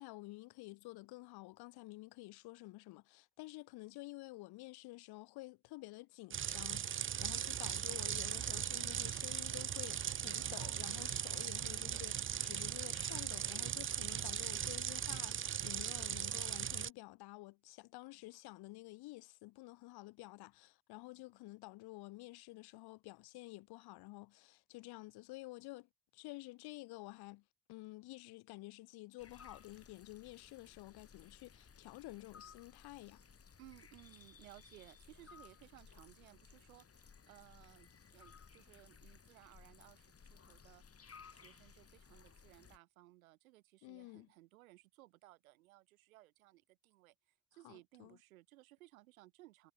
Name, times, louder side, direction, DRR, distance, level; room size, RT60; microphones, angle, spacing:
voice 1, 0.0-33.2 43.8-44.3 47.6-48.2, left 20 dB, 65° left, 1.0 m, -51 dB
sound 1, 6.3-16.9, right 9 dB, 30° right, 0.6 m, -39 dB
voice 2, 7.9-8.2 11.6-12.1 33.6-40.8 41.3-49.7, right 18 dB, 85° right, 5.6 m, -61 dB
sound 2, 29.2-42.8, left 6 dB, 35° left, 3.0 m, -60 dB
hypercardioid pair, 55°, 40 cm